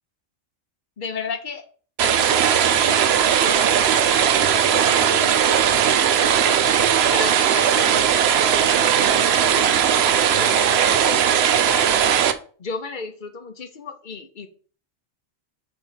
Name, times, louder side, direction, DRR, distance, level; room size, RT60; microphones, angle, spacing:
voice 1, 1.0-1.7 2.0-6.7 7.1-12.2 12.6-14.5, left 5 dB, 45° left, 0.8 m, -35 dB
sound 1, 2.0-12.3, right 8 dB, 60° right, 0.8 m, -18 dB
4.7 x 4.4 x 5.5 m
omnidirectional pair, 1.4 m